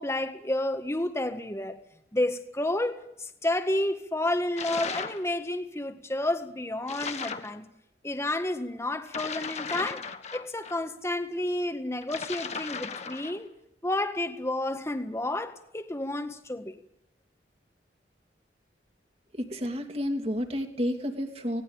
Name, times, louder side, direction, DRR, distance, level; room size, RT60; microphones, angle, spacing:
voice 1, 0.0-1.8 2.1-7.7 8.0-10.0 10.3-13.5 13.8-16.8, left 1 dB, 15° left, 7 dB, 1.7 m, -30 dB
sound 1, 4.6-5.3 6.9-7.5 9.1-10.8 12.0-13.4, left 5 dB, 40° left, 1.6 m, -36 dB
voice 2, 19.3-21.6, equal, 35° right, 4 dB, 2.9 m, -31 dB
19.5 x 18.0 x 9.0 m, 0.79 s
head